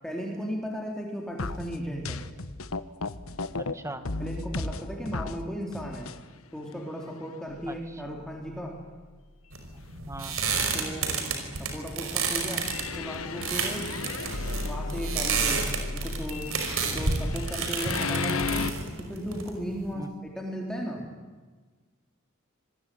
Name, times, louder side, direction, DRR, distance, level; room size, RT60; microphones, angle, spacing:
voice 1, 0.0-2.2 4.2-6.1 6.5-8.8 10.7-13.9 14.6-16.5 16.8-21.1, equal, 5° left, 0 dB, 3.7 m, -36 dB
sound 1, 1.4-3.7 4.1-5.4 5.7-6.2 6.7-6.8 7.5-7.6 8.1-8.2 12.6-18.7, left 3 dB, 75° left, 1.3 m, -34 dB
voice 2, 3.6-4.0 7.7-7.8 9.7-10.3 14.0-14.2 19.9-20.1, right 2 dB, 15° right, 9 dB, 1.9 m, -40 dB
sound 2, 9.5-19.9, right 4 dB, 70° right, 5.1 m, -30 dB
26.5 x 21.0 x 9.4 m, 1.4 s
head